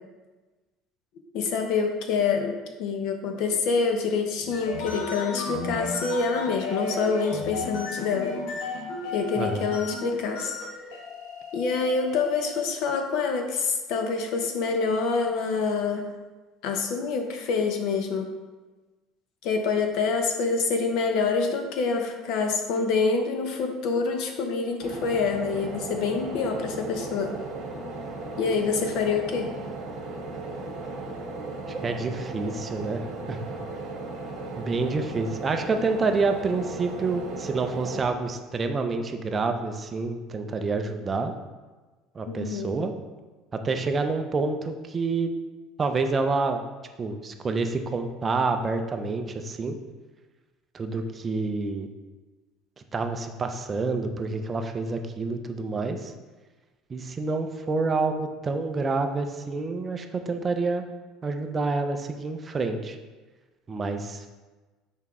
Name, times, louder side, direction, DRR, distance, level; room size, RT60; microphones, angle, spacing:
voice 1, 1.3-2.5 2.8-8.3 9.1-10.5 11.5-16.1 16.6-18.3 19.4-27.4 28.4-29.5 42.3-42.7, left 4 dB, 55° left, 5 dB, 0.8 m, -26 dB
sound 1, 4.4-12.7, left 3 dB, 85° left, 1.1 m, -34 dB
voice 2, 9.4-9.7 31.7-33.0 33.3-33.4 34.6-41.3 42.1-42.9 43.5-45.3 45.8-46.6 47.0-49.7 50.7-51.9 52.9-56.1 56.9-60.8 61.2-63.0 63.7-64.2, right 3 dB, 20° right, 6 dB, 0.4 m, -28 dB
sound 2, 24.8-38.0, right 3 dB, 40° right, 1.4 m, -36 dB
5.8 x 4.4 x 3.6 m, 1.3 s
cardioid pair, 170°, 0 cm